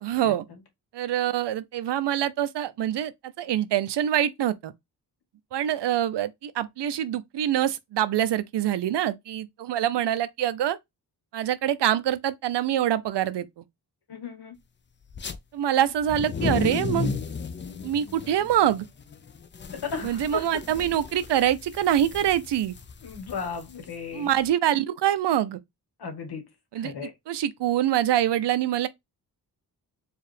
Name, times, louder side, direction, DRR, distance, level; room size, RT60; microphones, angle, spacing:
voice 1, 0.0-0.4 0.9-3.1 3.4-4.7 5.5-10.8 11.3-13.6 15.5-17.1 17.8-18.9 20.0-22.7 24.1-25.6 26.7-26.9 27.3-28.9, right 11 dB, 80° right, 0.6 m, -25 dB
voice 2, 14.1-14.5 19.7-20.6 23.0-24.3 26.0-26.4 26.7-27.1, left 5 dB, 70° left, 1.3 m, -35 dB
sound 1, 15.1-15.4 15.9-24.5, left 5 dB, 30° left, 0.4 m, -34 dB
4.6 x 2.4 x 3.3 m
wide cardioid pair, 115°, 41 cm